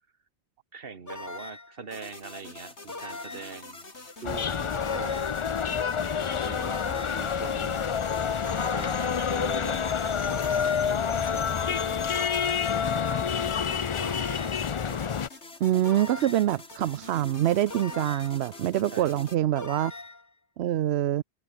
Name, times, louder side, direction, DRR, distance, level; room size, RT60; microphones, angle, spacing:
voice 1, 0.7-3.9 4.2-5.3 6.5-6.8 7.1-7.9 8.6-12.0 12.7-13.6 18.9-19.3, right 5 dB, 60° right, 1.8 m, -43 dB
sound 1, 1.1-1.8 2.9-3.6 4.7-5.5 6.6-7.3 8.4-9.2 10.3-11.0 12.1-12.9 14.0-14.7 15.9-16.6 17.7-18.4 19.6-20.3, left 2 dB, 20° left, 0.9 m, -40 dB
sound 2, 1.9-19.4, left 2 dB, 85° left, 4.0 m, -46 dB
sound 3, 4.2-15.3, left 7 dB, 45° left, 0.4 m, -28 dB
voice 2, 15.6-19.9 20.6-21.2, right 12 dB, 75° right, 0.8 m, -25 dB
omnidirectional pair, 1.1 m